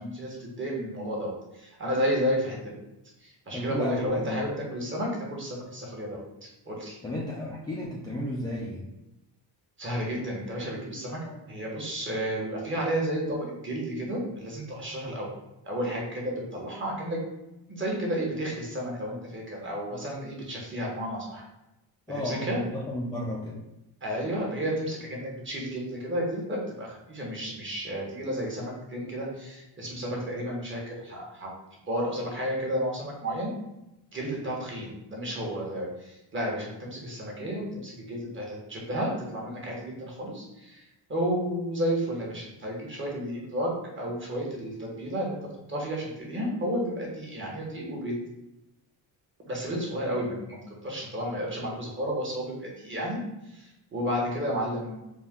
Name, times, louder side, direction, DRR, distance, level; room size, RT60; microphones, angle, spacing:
voice 1, 0.0-2.7 3.2-7.0 9.8-15.3 15.6-17.3 17.7-21.4 22.1-22.6 24.0-31.5 31.9-33.5 34.1-40.8 41.1-48.2 49.5-55.1, equal, 25° right, -3 dB, 1.2 m, -32 dB
voice 2, 3.5-4.4 7.0-8.9 22.1-23.6, left 1 dB, 10° left, -4 dB, 0.4 m, -33 dB
4.3 x 2.4 x 3.6 m, 0.93 s
cardioid pair, 130°, 45 cm